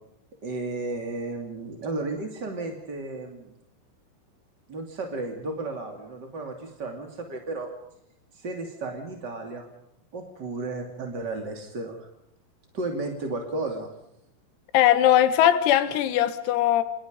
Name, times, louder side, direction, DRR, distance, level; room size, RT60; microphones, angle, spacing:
voice 1, 0.4-3.5 4.7-7.7 8.3-9.7 10.1-12.1 12.7-13.9, right 2 dB, 30° right, 2.0 m, -33 dB
voice 2, 14.7-16.8, left 11 dB, 90° left, 4.3 m, -20 dB
29.0 x 28.0 x 5.2 m
omnidirectional pair, 5.9 m